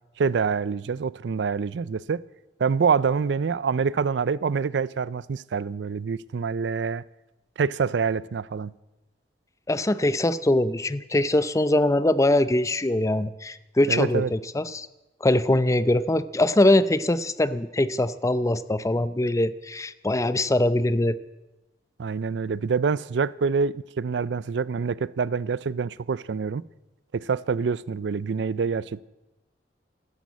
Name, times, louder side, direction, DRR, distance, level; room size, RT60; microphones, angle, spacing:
voice 1, 0.2-2.2 2.6-7.0 7.6-8.7 13.9-14.3 22.0-26.6 27.1-29.0, right 5 dB, 85° right, 0.4 m, -26 dB
voice 2, 9.7-14.9 15.2-21.2, left 1 dB, 20° left, 0.6 m, -22 dB
13.5 x 12.5 x 8.3 m
head